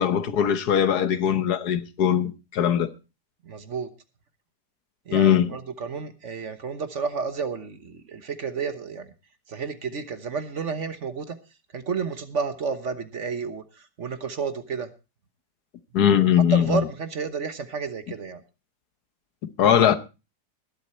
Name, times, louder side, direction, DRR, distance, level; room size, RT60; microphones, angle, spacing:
voice 1, 0.0-2.9 5.1-5.5 15.9-16.8 19.6-20.0, left 9 dB, 70° left, 1.5 m, -20 dB
voice 2, 3.4-3.9 5.1-9.1 9.5-11.4 11.7-14.9 16.5-18.4, right 5 dB, 50° right, 1.4 m, -31 dB
20.5 x 8.2 x 4.3 m
omnidirectional pair, 1.8 m